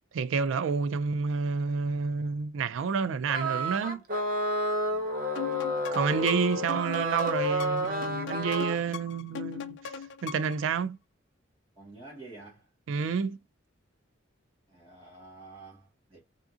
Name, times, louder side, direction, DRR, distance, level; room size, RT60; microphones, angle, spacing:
voice 1, 0.1-4.0 5.9-9.9 10.2-11.0 12.9-13.4, right 5 dB, 80° right, 0.4 m, -29 dB
sound 1, 3.3-8.8, equal, 45° right, 0.7 m, -30 dB
voice 2, 4.8-5.2 11.7-12.7 14.7-16.2, right 3 dB, 25° right, 1.4 m, -50 dB
sound 2, 5.4-10.6, left 6 dB, 60° left, 0.3 m, -39 dB
3.5 x 2.8 x 2.4 m
head